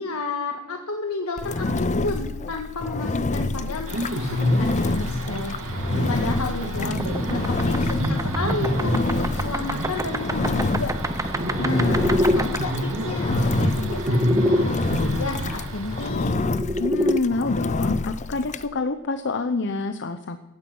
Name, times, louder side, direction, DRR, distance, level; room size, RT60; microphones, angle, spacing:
voice 1, 0.0-5.6 6.1-6.9 7.3-10.9 11.6-16.6, left 2 dB, 80° left, 3 dB, 1.7 m, -31 dB
Engine, 1.4-18.7, left 3 dB, 35° left, 0.6 m, -28 dB
sound 1, 3.9-16.1, equal, 65° right, 2.3 m, -28 dB
voice 2, 6.6-7.7 16.8-20.4, left 3 dB, 60° left, 9 dB, 0.8 m, -28 dB
sound 2, 6.7-14.6 15.9-17.2, equal, 15° right, 0.8 m, -27 dB
16.5 x 15.0 x 5.5 m, 0.99 s
head